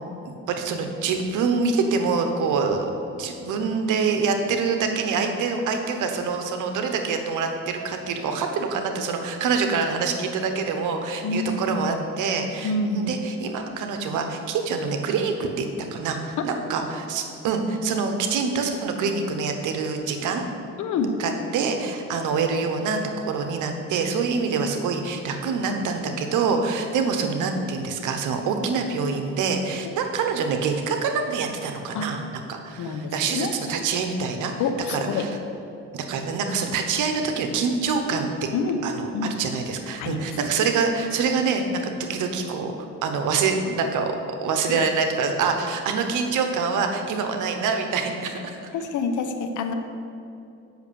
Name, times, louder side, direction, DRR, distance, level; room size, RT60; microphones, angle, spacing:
voice 1, 0.2-2.9 3.2-20.5 21.2-34.5 34.9-35.3 35.9-38.5 38.8-41.8 42.1-48.6, right 5 dB, 85° right, 5 dB, 1.1 m, -25 dB
voice 2, 11.2-11.5 12.6-13.1 20.8-21.1 31.9-32.1 32.8-33.5 34.6-35.3 38.5-38.8 39.1-39.3 40.0-40.3 44.7-44.9 48.7-49.7, left 4 dB, 80° left, 6 dB, 0.9 m, -27 dB
8.1 x 6.1 x 6.9 m, 2.8 s
cardioid pair, 90°, 30 cm